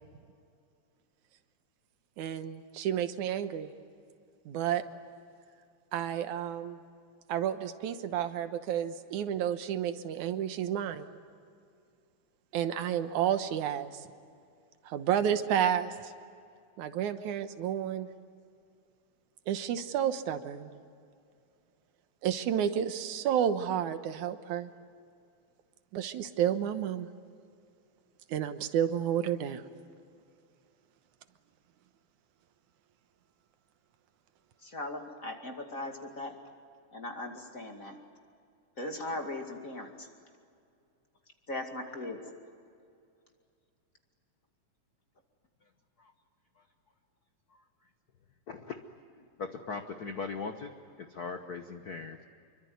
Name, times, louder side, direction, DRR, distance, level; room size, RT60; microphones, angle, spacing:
voice 1, 2.2-3.7 4.5-4.8 5.9-6.8 7.3-11.1 12.5-13.9 14.9-16.1 16.8-18.1 19.5-20.7 22.2-24.7 25.9-27.1 28.3-29.6, right 9 dB, 80° right, 10 dB, 2.5 m, -31 dB
voice 2, 34.6-36.4 36.9-37.9 38.8-40.1 41.5-42.2, left 2 dB, 30° left, 3 dB, 2.4 m, -39 dB
voice 3, 48.5-48.8 49.4-50.7 51.0-52.2, left 4 dB, 75° left, 6 dB, 0.8 m, -39 dB
26.5 x 24.0 x 9.5 m, 2.4 s
omnidirectional pair, 3.4 m